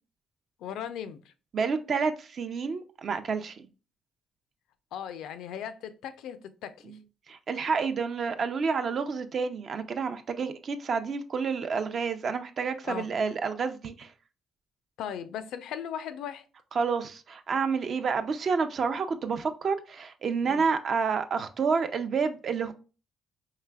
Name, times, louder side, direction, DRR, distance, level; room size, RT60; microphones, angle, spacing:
voice 1, 0.6-1.3 4.9-7.0 12.8-13.1 15.0-16.4 20.4-20.6, left 9 dB, 85° left, 0.4 m, -38 dB
voice 2, 1.5-3.7 7.3-14.1 16.8-22.7, right 5 dB, 50° right, 0.5 m, -29 dB
4.7 x 3.3 x 2.3 m
cardioid pair, 90°, 0 cm